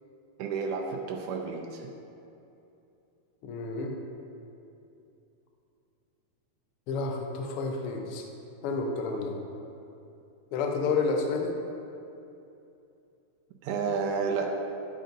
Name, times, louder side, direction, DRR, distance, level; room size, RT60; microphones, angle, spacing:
voice 1, 0.4-1.9 13.6-14.5, right 5 dB, 85° right, 1 dB, 2.1 m, -31 dB
voice 2, 3.4-4.0 6.9-8.3 8.6-9.4 10.5-11.5, left 4 dB, 80° left, 2 dB, 1.2 m, -30 dB
11.0 x 6.5 x 2.6 m, 2.7 s
omnidirectional pair, 3.5 m